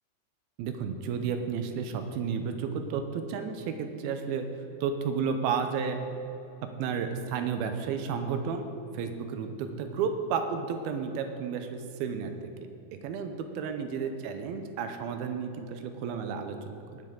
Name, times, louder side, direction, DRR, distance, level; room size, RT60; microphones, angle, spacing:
voice 1, 0.6-4.5 4.8-6.0 6.8-8.7 8.9-12.3 13.0-17.0, right 6 dB, 85° right, 7 dB, 2.6 m, -32 dB
18.5 x 7.6 x 3.8 m, 2.8 s
omnidirectional pair, 4.3 m